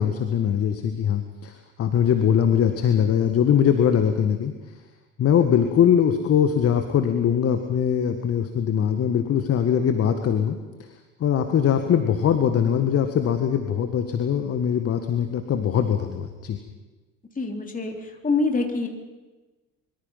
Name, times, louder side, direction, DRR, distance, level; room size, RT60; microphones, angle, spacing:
voice 1, 0.0-4.5 5.2-10.6 11.2-16.6, left 8 dB, 35° left, 7 dB, 1.7 m, -21 dB
voice 2, 17.4-17.9 18.2-18.9, left 3 dB, 20° left, 2 dB, 3.7 m, -24 dB
24.5 x 23.5 x 5.6 m, 1.2 s
figure-of-eight pair, 60°, 39 cm